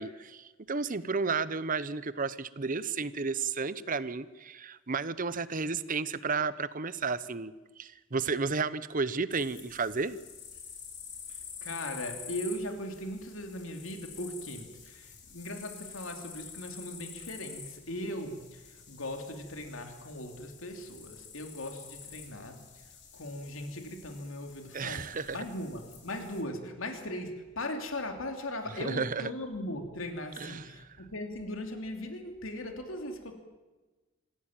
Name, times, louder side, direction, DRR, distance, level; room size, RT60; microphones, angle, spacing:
voice 1, 0.0-7.5 7.8-10.2 24.7-25.4 28.8-29.2 30.4-30.7, right 4 dB, 40° right, 16 dB, 0.9 m, -32 dB
sound 1, 9.3-26.4, left 7 dB, 55° left, 4.2 m, -48 dB
voice 2, 11.3-22.8 23.1-33.4, left 1 dB, 75° left, 5 dB, 2.9 m, -39 dB
25.5 x 15.5 x 9.0 m, 1.2 s
head